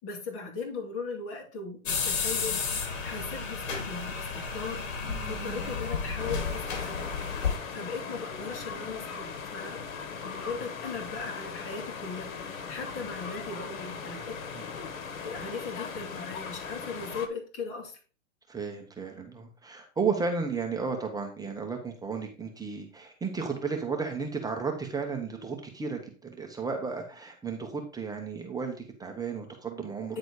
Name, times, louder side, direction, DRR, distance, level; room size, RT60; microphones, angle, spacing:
voice 1, 0.0-7.4 7.7-9.8 10.2-14.7 15.2-18.0 30.1-30.2, left 4 dB, 35° left, 1 dB, 3.0 m, -38 dB
sound 1, 1.9-7.6, left 5 dB, 70° left, 2.7 m, -32 dB
voice 2, 5.0-5.7 14.6-14.7 18.5-30.2, right 5 dB, 10° right, 2 dB, 1.0 m, -34 dB
sound 2, 6.2-17.3, left 5 dB, 90° left, 1.4 m, -39 dB
9.5 x 4.1 x 4.8 m, 0.37 s
hypercardioid pair, 135°, 40 cm